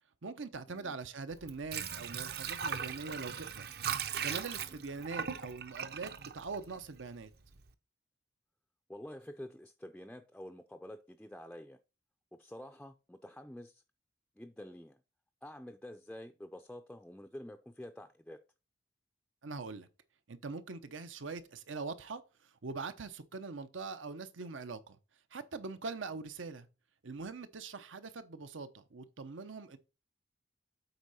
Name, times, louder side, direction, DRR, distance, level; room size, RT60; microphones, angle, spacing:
voice 1, 0.2-3.7 4.2-7.3 19.4-19.9 20.3-22.2 22.6-25.0 25.3-26.7 27.0-29.8, right 4 dB, 90° right, 0.8 m, -42 dB
Water / Sink (filling or washing), 1.3-7.2 7.6-7.7, right 7 dB, 55° right, 0.6 m, -39 dB
voice 2, 8.9-11.8 12.3-13.8 14.4-15.0 15.4-18.4, left 1 dB, 5° left, 0.3 m, -48 dB
8.1 x 4.6 x 4.1 m
head